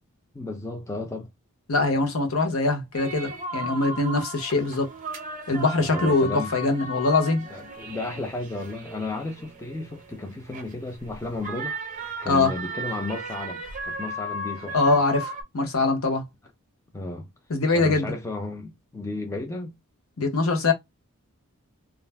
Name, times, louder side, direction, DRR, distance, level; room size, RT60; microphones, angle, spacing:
voice 1, 0.3-1.3 5.8-6.5 7.4-11.7 12.2-15.0 16.9-17.3 17.7-19.7, left 2 dB, 15° left, 0.4 m, -33 dB
voice 2, 1.7-4.9 5.5-7.4 12.3-12.5 14.7-16.2 17.5-18.1 20.2-20.7, left 3 dB, 70° left, 0.8 m, -23 dB
sound 1, 2.9-15.4, right 1 dB, 35° right, 0.5 m, -36 dB
2.4 x 2.0 x 3.2 m
head